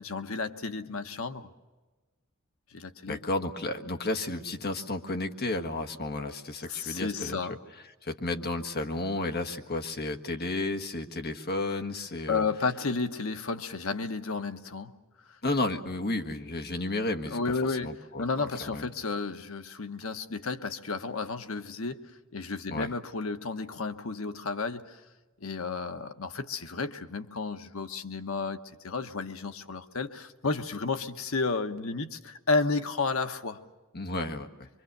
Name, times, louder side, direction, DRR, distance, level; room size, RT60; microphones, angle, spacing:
voice 1, 0.0-1.5 2.7-3.2 6.7-7.5 12.3-14.9 17.3-17.9 18.2-22.1 22.3-25.0 25.4-28.6 28.8-33.6, left 4 dB, 75° left, 8 dB, 1.2 m, -32 dB
voice 2, 3.1-7.6 8.0-12.4 15.4-18.2 18.6-18.9 22.7-22.9 33.9-34.7, left 2 dB, 50° left, 6 dB, 1.6 m, -32 dB
24.5 x 24.5 x 6.7 m, 1.2 s
head